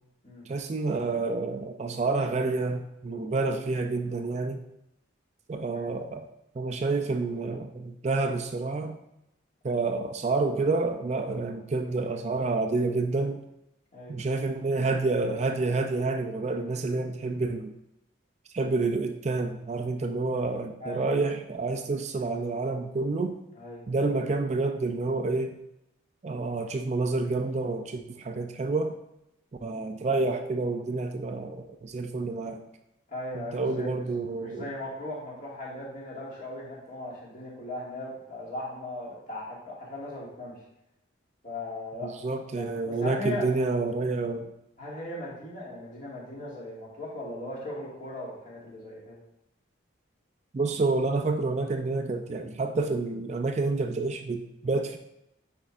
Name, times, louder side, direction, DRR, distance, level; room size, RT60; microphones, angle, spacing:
voice 1, 0.5-4.6 5.5-6.3 6.6-9.0 9.6-13.4 14.1-17.7 18.5-23.4 23.9-25.5 26.2-28.9 29.6-32.6 33.3-34.7 42.0-44.5 50.5-55.0, right 3 dB, 35° right, 6 dB, 0.3 m, -28 dB
voice 2, 20.8-21.1 23.6-23.8 33.1-34.1 34.4-40.6 41.4-42.1 42.5-43.5 44.8-49.2, left 1 dB, 40° left, -5 dB, 1.9 m, -38 dB
9.2 x 4.4 x 2.5 m, 0.85 s
head